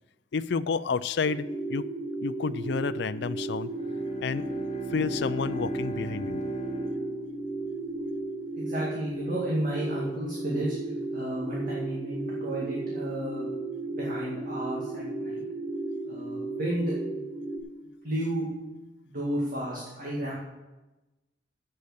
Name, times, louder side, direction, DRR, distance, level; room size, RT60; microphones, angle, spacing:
voice 1, 0.3-1.9 2.2-3.7 4.2-4.5 4.9-6.4, left 5 dB, 65° left, 14 dB, 0.5 m, -30 dB
sound 1, 1.2-17.6, right 2 dB, 15° right, 1.9 m, -34 dB
Bowed string instrument, 3.6-7.9, equal, 40° left, 2.4 m, -38 dB
voice 2, 8.6-10.8 11.1-13.5 13.9-15.4 16.1-17.3 18.0-18.5 19.0-20.3, right 1 dB, 50° right, -4 dB, 2.1 m, -32 dB
8.5 x 7.9 x 8.2 m, 1.1 s
head